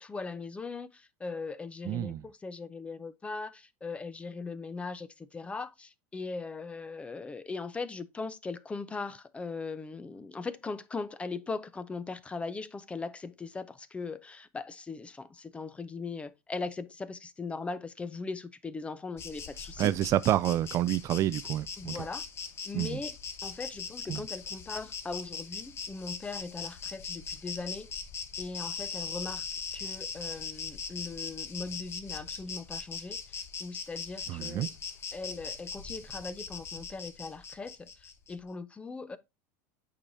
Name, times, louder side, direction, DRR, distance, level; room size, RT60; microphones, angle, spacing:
voice 1, 0.0-19.9 21.8-22.2 22.6-23.1 23.4-27.9 28.4-34.7 35.1-39.2, left 4 dB, 15° left, 0.6 m, -39 dB
voice 2, 1.9-2.2 19.8-22.0 22.7-23.0 24.1-24.2 34.3-34.7, right 13 dB, 40° right, 0.3 m, -28 dB
Insect, 19.2-38.3, left 6 dB, 30° left, 1.0 m, -40 dB
8.6 x 4.9 x 2.6 m
supercardioid pair, 125°, 8 cm